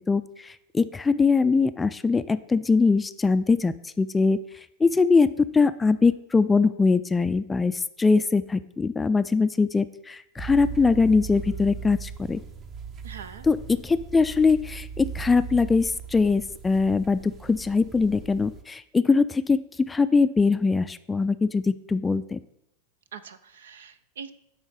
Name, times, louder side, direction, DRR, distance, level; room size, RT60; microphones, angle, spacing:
voice 1, 0.1-4.4 4.8-12.4 13.4-22.4, left 4 dB, 15° left, 13 dB, 0.4 m, -22 dB
sound 1, 10.4-18.6, right 6 dB, 35° right, 0.8 m, -38 dB
voice 2, 13.0-13.5 23.1-24.3, right 7 dB, 75° right, 12 dB, 0.6 m, -42 dB
8.9 x 3.7 x 6.7 m, 0.79 s
hypercardioid pair, 95°, 0 cm